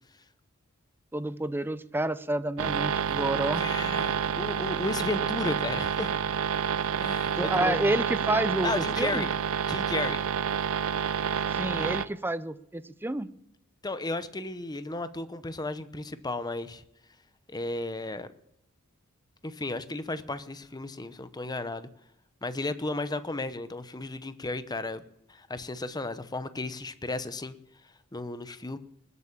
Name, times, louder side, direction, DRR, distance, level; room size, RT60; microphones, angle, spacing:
voice 1, 1.1-3.6 7.4-9.3 11.5-13.3, right 1 dB, 10° right, 14 dB, 0.6 m, -29 dB
sound 1, 2.6-12.1, right 7 dB, 65° right, 0.6 m, -29 dB
voice 2, 3.6-6.1 6.9-7.9 8.6-9.3 9.7-10.3 13.8-16.8 17.5-18.3 19.4-21.9 22.4-25.0 25.3-27.6 28.1-28.8, left 2 dB, 20° left, 12 dB, 0.8 m, -34 dB
20.0 x 8.4 x 7.3 m, 0.79 s
head